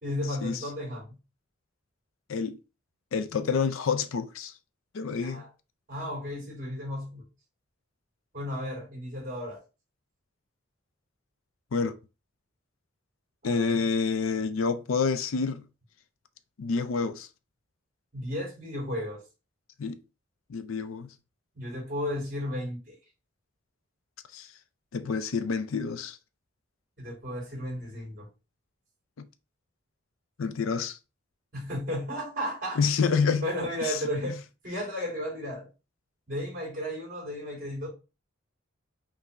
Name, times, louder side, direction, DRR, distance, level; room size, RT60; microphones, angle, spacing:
voice 1, 0.0-1.2 5.2-5.5 5.9-7.2 8.3-9.6 13.4-13.9 18.1-19.2 21.5-23.0 27.0-28.3 31.5-32.8 33.4-34.4 34.6-35.7 36.3-37.9, equal, 40° right, 2.5 m, -34 dB
voice 2, 3.1-4.5 4.9-5.4 11.7-12.0 13.4-15.6 16.6-17.3 19.8-20.0 20.5-21.1 24.3-24.5 24.9-26.2 29.2-29.3 30.4-31.0 32.8-33.5 33.8-34.0, left 5 dB, 75° left, 0.5 m, -28 dB
5.2 x 2.6 x 3.3 m
head